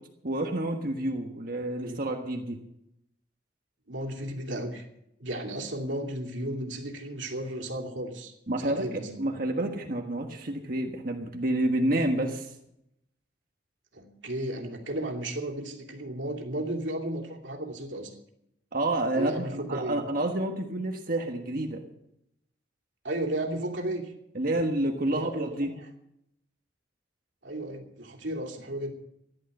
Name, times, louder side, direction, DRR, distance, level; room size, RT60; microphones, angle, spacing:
voice 1, 0.2-2.6 8.5-12.5 18.7-21.8 24.3-25.7, right 1 dB, 50° right, 3 dB, 1.4 m, -29 dB
voice 2, 1.6-2.0 3.9-4.9 5.2-9.1 13.9-18.1 19.1-20.2 23.0-24.1 25.1-25.7 27.4-28.9, right 1 dB, 85° right, 2 dB, 2.8 m, -34 dB
15.0 x 11.5 x 6.7 m, 0.81 s
head